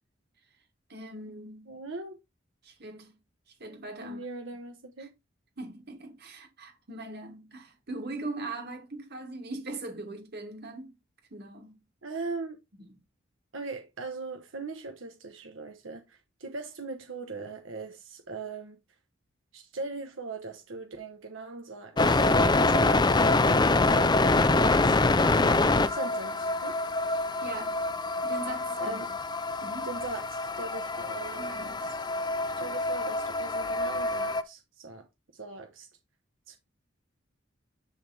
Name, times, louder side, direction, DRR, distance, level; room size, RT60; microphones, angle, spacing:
voice 1, 0.9-1.8 2.6-3.2 3.6-4.2 5.0-5.1 5.6-10.9 11.3-11.8 12.8-12.9 25.3-25.7 27.4-27.8 28.2-29.0 29.6-29.9 31.4-31.9, right 2 dB, 55° right, 2.3 m, -40 dB
voice 2, 1.7-2.2 4.0-5.2 12.0-12.6 13.5-18.8 19.5-23.4 23.9-25.0 25.9-26.8 28.8-29.1 29.8-31.9 32.6-35.1 35.3-35.9 36.5-36.6, right 3 dB, 90° right, 1.1 m, -40 dB
sound 1, 22.0-34.4, left 2 dB, 20° left, 0.6 m, -25 dB
10.5 x 3.5 x 4.2 m
head